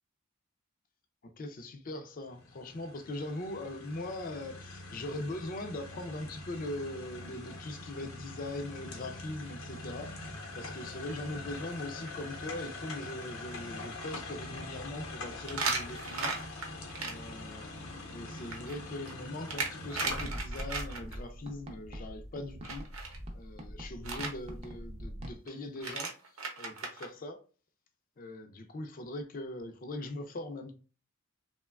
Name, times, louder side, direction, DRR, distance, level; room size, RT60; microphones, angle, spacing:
voice 1, 1.2-16.7 17.0-26.1 26.6-27.4 28.2-30.7, left 1 dB, 40° left, 0.4 m, -41 dB
sound 1, 2.3-20.3, left 2 dB, 75° left, 0.7 m, -44 dB
sound 2, 10.5-10.8 11.1-11.2 11.7-11.8 12.1-12.2 15.5-17.1 18.3-21.2 22.6-23.2 24.0-24.3 25.5-25.6 25.8-27.1, right 4 dB, 75° right, 0.7 m, -36 dB
sound 3, 20.0-25.3, equal, 30° right, 0.5 m, -43 dB
2.9 x 2.1 x 2.3 m
head